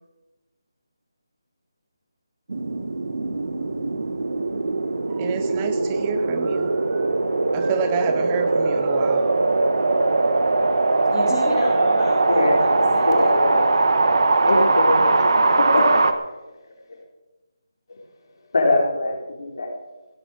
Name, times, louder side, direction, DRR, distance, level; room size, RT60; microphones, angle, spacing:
sound 1, 2.5-16.1, right 3 dB, 70° right, 1.3 m, -21 dB
voice 1, 5.1-7.1 7.5-9.3, right 7 dB, 15° right, 10 dB, 0.5 m, -30 dB
voice 2, 10.7-13.8, left 2 dB, 10° left, -10 dB, 3.3 m, -32 dB
voice 3, 12.1-13.7 14.4-16.2 16.9-17.0 18.5-19.7, left 2 dB, 60° left, 0 dB, 4.0 m, -23 dB
16.5 x 12.5 x 5.1 m, 1.1 s
figure-of-eight pair, 170°, 2 cm